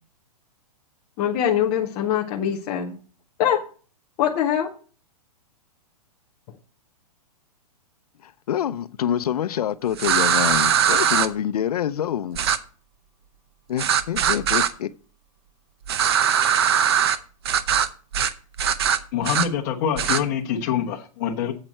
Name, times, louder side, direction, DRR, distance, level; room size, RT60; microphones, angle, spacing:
voice 1, 1.2-2.9 3.4-3.6 4.2-4.7, left 9 dB, 10° left, 0.3 m, -23 dB
voice 2, 8.2-12.4 13.7-14.9, left 10 dB, 75° left, 0.6 m, -26 dB
sound 1, 10.0-11.3 12.4-12.6 13.8-14.7 15.9-17.2 17.5-17.9 18.1-18.3 18.6-19.5 20.0-20.2, right 8 dB, 40° right, 0.7 m, -20 dB
voice 3, 19.1-21.5, left 8 dB, 30° left, 1.2 m, -25 dB
9.1 x 7.6 x 4.3 m
hypercardioid pair, 180°, 19 cm